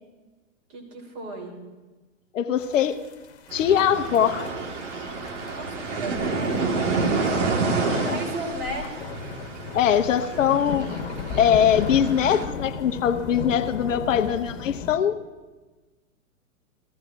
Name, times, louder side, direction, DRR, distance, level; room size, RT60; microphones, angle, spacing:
voice 1, 0.7-1.5 5.4-7.1 7.6-8.9, right 1 dB, 35° right, 0 dB, 3.4 m, -35 dB
voice 2, 2.3-3.0 3.5-4.5 7.9-8.2 9.7-10.9 11.4-15.2, left 9 dB, 65° left, 10 dB, 0.8 m, -22 dB
sound 1, 2.6-15.0, left 6 dB, 50° left, 1.2 m, -36 dB
sound 2, 3.5-12.4, right 3 dB, 60° right, 1.8 m, -29 dB
18.5 x 14.5 x 2.6 m, 1.3 s
hypercardioid pair, 115°, 40 cm